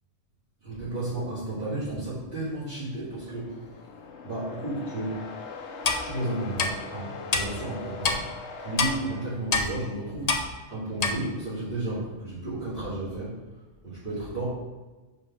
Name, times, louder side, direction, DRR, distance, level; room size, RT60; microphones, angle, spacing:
voice 1, 0.6-3.8 4.2-5.2 6.0-8.3 8.6-13.4 13.8-14.5, right 2 dB, 50° right, -14 dB, 2.7 m, -33 dB
sound 1, 2.9-9.9, left 4 dB, 75° left, 1.0 m, -42 dB
Clock, 5.8-6.0 6.6-6.7 7.3-7.4 8.0-8.2 8.8-8.9 9.5-9.7 10.3-10.4 11.0-11.1, left 4 dB, 40° left, 0.6 m, -24 dB
5.6 x 4.9 x 5.6 m, 1.2 s
omnidirectional pair, 1.2 m